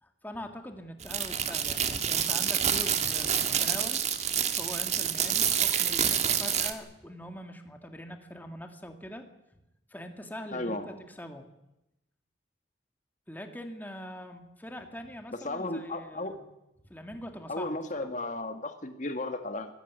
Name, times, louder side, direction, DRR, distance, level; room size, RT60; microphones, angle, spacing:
voice 1, 0.0-4.0 4.6-9.3 9.9-11.5 13.3-16.5 16.9-18.1, equal, 10° left, 5 dB, 1.9 m, -43 dB
sound 1, 1.0-6.7, right 8 dB, 40° right, 1.7 m, -28 dB
voice 2, 10.5-10.9 15.4-16.3 17.5-19.7, left 2 dB, 45° left, 7 dB, 1.7 m, -34 dB
24.0 x 14.5 x 9.3 m, 0.91 s
head